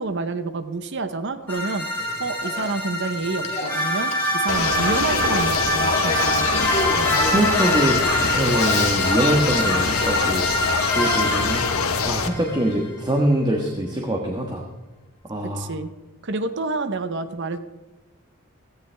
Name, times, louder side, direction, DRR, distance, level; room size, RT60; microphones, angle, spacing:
voice 1, 0.0-6.7 15.5-15.9 16.2-17.6, right 3 dB, 55° right, 10 dB, 0.8 m, -28 dB
sound 1, 1.5-12.8, equal, 10° left, 3.2 m, -25 dB
Male speech man speaking / Female speech woman speaking / Conversation, 2.0-9.6, left 2 dB, 30° left, 1.7 m, -32 dB
sound 2, 4.5-12.3, left 5 dB, 75° left, 1.0 m, -24 dB
voice 2, 6.9-10.4 10.7-11.7 12.0-14.6 15.3-15.7, right 1 dB, 20° right, 1 dB, 1.3 m, -24 dB
16.5 x 14.5 x 3.4 m, 1.1 s
head